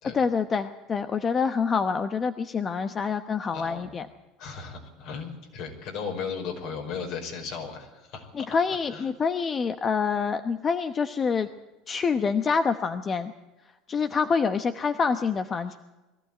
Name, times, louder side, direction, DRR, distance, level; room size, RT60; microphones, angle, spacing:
voice 1, 0.1-4.1 8.3-11.5 11.9-13.3 13.9-15.7, left 5 dB, 30° left, 9 dB, 1.0 m, -26 dB
voice 2, 3.5-3.8 4.4-8.3 8.9-9.0, left 5 dB, 65° left, 3 dB, 5.5 m, -36 dB
21.5 x 14.0 x 9.0 m, 1.1 s
supercardioid pair, 95°, 0 cm